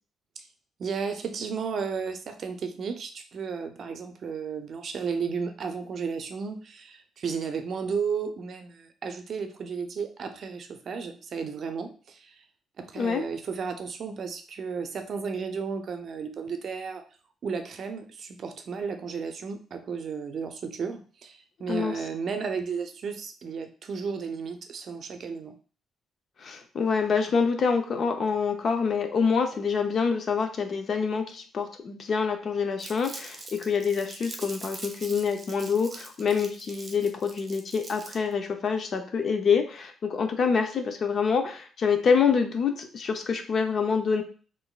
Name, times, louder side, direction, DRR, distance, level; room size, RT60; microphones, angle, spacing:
voice 1, 0.8-12.4 12.8-17.0 17.4-25.5, right 5 dB, 55° right, 7 dB, 0.5 m, -33 dB
voice 2, 26.4-44.2, left 5 dB, 55° left, 6 dB, 0.5 m, -26 dB
Crumpling crinkling, 32.8-38.3, right 2 dB, 30° right, 0.8 m, -43 dB
3.7 x 2.5 x 2.3 m, 0.40 s
cardioid pair, 90°, 0 cm